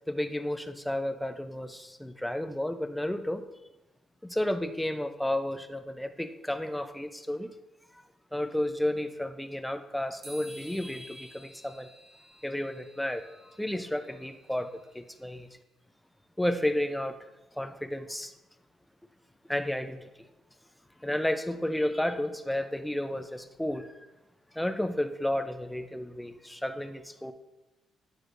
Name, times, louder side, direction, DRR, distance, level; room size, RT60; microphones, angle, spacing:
voice 1, 0.1-3.4 4.2-7.5 8.3-11.9 12.4-13.3 13.6-15.5 16.4-17.2 17.6-18.3 19.5-20.0 21.0-23.9 24.5-27.3, left 1 dB, 5° left, 9 dB, 0.6 m, -32 dB
sound 1, 10.2-15.5, right 1 dB, 65° right, 2.6 m, -54 dB
9.9 x 6.3 x 2.5 m, 0.98 s
cardioid pair, 90°, 0 cm